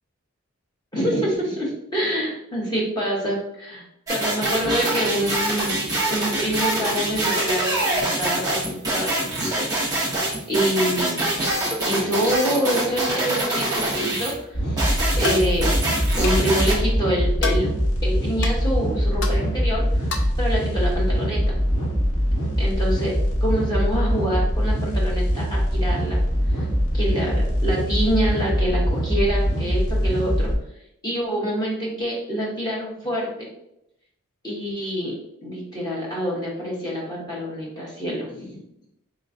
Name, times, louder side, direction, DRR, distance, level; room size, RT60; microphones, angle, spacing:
voice 1, 0.9-5.8 6.1-11.3 11.8-14.9 15.2-15.7 16.2-17.7 18.0-20.1 20.4-21.6 22.6-23.1 23.4-26.2 26.5-26.7 26.9-30.5 31.0-33.5 34.4-35.1 35.4-38.6, equal, 20° left, -4 dB, 1.0 m, -26 dB
sound 1, 4.1-14.3 14.8-16.7, right 1 dB, 15° right, 0.9 m, -25 dB
sound 2, 14.5-30.5, equal, 90° left, 1.3 m, -22 dB
sound 3, 15.2-15.5 16.2-16.4 17.4-17.6 18.4-18.5 19.2-19.4 20.1-20.4, left 4 dB, 55° left, 0.5 m, -27 dB
4.0 x 3.1 x 2.6 m, 0.79 s
head